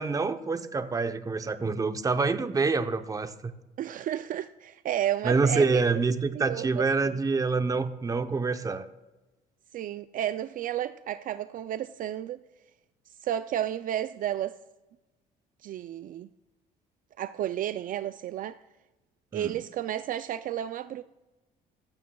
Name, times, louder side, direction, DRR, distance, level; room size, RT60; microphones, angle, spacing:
voice 1, 0.0-3.5 5.2-8.9 19.3-19.6, right 4 dB, 20° right, 0.7 m, -26 dB
voice 2, 3.8-5.8 6.3-7.2 9.7-12.4 13.2-14.6 15.6-16.3 17.2-18.6 19.3-21.0, right 11 dB, 55° right, 0.4 m, -32 dB
16.5 x 14.5 x 2.3 m
cardioid pair, 110°, 17 cm